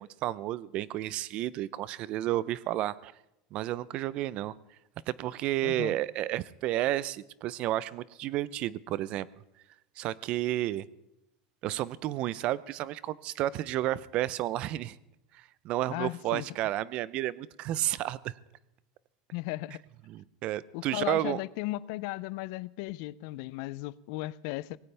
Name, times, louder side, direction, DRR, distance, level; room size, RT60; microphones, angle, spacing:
voice 1, 0.0-3.1 3.5-4.5 5.1-9.3 10.0-10.8 11.6-15.0 15.3-18.3 20.1-21.4, right 14 dB, 50° right, 0.6 m, -31 dB
voice 2, 5.6-5.9 15.9-16.5 19.3-19.8 20.7-24.8, left 19 dB, 70° left, 0.4 m, -36 dB
18.5 x 17.5 x 3.4 m
supercardioid pair, 140°, 2 cm